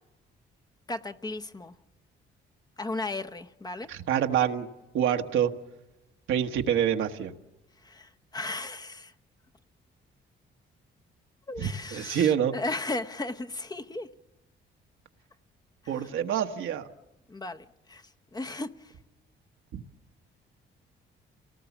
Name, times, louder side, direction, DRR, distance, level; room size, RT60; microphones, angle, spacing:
voice 1, 0.9-1.7 2.8-3.9 7.8-9.1 11.5-14.1 17.3-18.0 18.3-18.9, left 2 dB, 20° left, 0.9 m, -35 dB
voice 2, 3.9-4.7 4.9-5.5 6.3-7.3 11.6-12.5 15.9-16.9 19.7-19.8, right 9 dB, 80° right, 1.4 m, -26 dB
28.5 x 18.5 x 7.2 m
cardioid pair, 90°, 20 cm